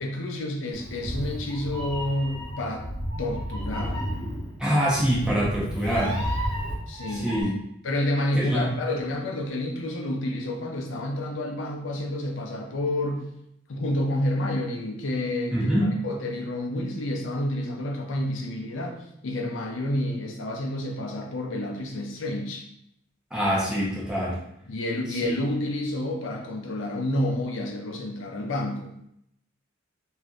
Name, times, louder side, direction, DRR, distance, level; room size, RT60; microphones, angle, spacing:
voice 1, 0.0-2.9 3.2-4.0 6.9-7.3 7.8-13.3 13.7-22.7 24.7-28.9, left 1 dB, 85° left, 1 dB, 0.5 m, -29 dB
Meow, 0.7-7.4, equal, 25° left, 1.2 m, -32 dB
voice 2, 4.6-6.2 7.2-7.5 8.3-8.7 15.5-15.9 23.3-24.4 25.2-25.3, equal, 5° right, -6 dB, 0.8 m, -24 dB
3.3 x 2.7 x 2.4 m, 0.76 s
head